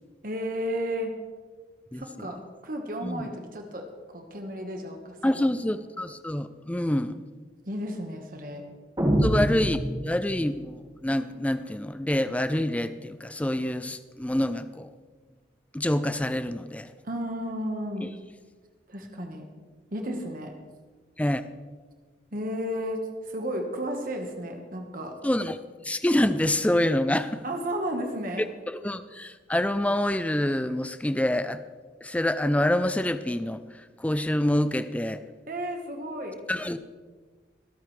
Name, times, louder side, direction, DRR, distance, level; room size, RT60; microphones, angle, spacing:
voice 1, 0.2-1.1 1.9-3.8 4.1-5.2 7.7-8.6 9.3-9.4 17.0-18.1 18.9-19.4 19.9-20.5 22.3-25.1 27.4-28.5 35.5-36.4, equal, 45° right, 3 dB, 1.4 m, -33 dB
voice 2, 1.9-2.3 3.0-3.2 5.2-7.2 9.2-14.9 15.7-16.9 18.0-18.1 21.2-21.4 25.2-25.6 25.8-27.4 28.7-31.6 32.0-33.6 34.0-35.2 36.5-36.8, left 1 dB, 5° left, 12 dB, 0.4 m, -26 dB
sound 1, 9.0-10.6, equal, 20° right, 1.8 m, -25 dB
24.0 x 8.4 x 3.3 m, 1.5 s
head